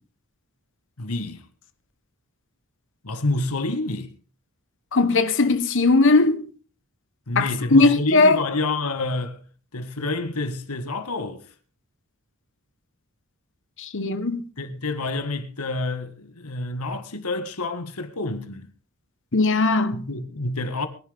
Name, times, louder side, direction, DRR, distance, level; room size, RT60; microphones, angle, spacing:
voice 1, 1.0-1.4 3.0-4.1 7.3-9.5 9.7-11.4 14.6-18.7 19.9-20.9, left 2 dB, 90° left, 1.9 m, -28 dB
voice 2, 4.9-6.4 7.4-8.4 13.8-14.4 19.3-20.0, left 3 dB, 60° left, 1.3 m, -19 dB
23.0 x 11.0 x 3.6 m
head